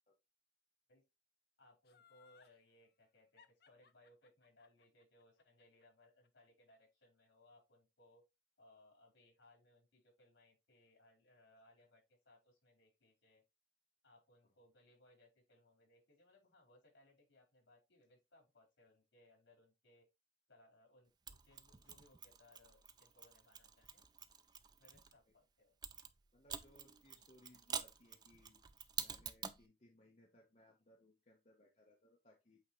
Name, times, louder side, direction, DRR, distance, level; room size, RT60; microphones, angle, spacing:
voice 1, 1.6-8.2 8.6-13.4 14.0-20.1 20.5-24.0 24.8-25.8, left 1 dB, 75° left, 4.1 m, -68 dB
Laughter, 1.8-2.6 3.4-6.5 6.8-6.9, left 7 dB, 55° left, 0.6 m, -67 dB
Mechanisms, 21.3-25.1 25.8-29.6, right 6 dB, 20° right, 0.4 m, -48 dB
voice 2, 26.3-28.6 29.0-32.6, left 1 dB, 35° left, 1.0 m, -67 dB
8.4 x 3.7 x 3.0 m
head